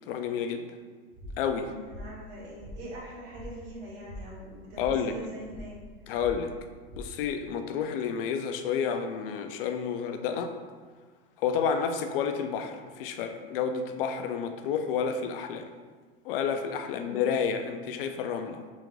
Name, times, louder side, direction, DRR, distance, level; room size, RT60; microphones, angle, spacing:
voice 1, 0.1-0.7 1.4-1.7 4.8-5.1 6.1-6.5 7.0-10.5 11.4-15.7 16.2-18.6, left 7 dB, 65° left, 7 dB, 0.4 m, -30 dB
sound 1, 1.1-7.5, equal, 25° right, 0.5 m, -45 dB
voice 2, 1.6-5.7 16.8-17.1, right 1 dB, 45° right, -6 dB, 1.3 m, -43 dB
3.6 x 2.5 x 3.1 m, 1.5 s
supercardioid pair, 140°, 30 cm